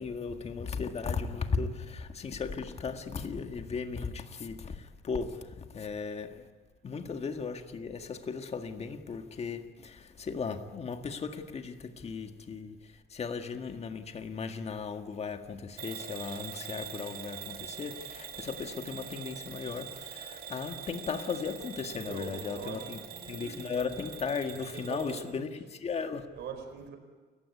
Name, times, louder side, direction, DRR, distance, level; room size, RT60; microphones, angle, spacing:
voice 1, 0.0-6.5 6.8-12.8 13.1-26.3, left 5 dB, 35° left, 1.8 m, -36 dB
Bell / Alarm, 15.8-25.3, right 8 dB, 55° right, 2.2 m, -44 dB
voice 2, 21.8-23.7 24.7-25.5 26.3-27.0, right 6 dB, 70° right, 4.9 m, -43 dB
29.0 x 15.5 x 9.7 m
cardioid pair, 125°, 18 cm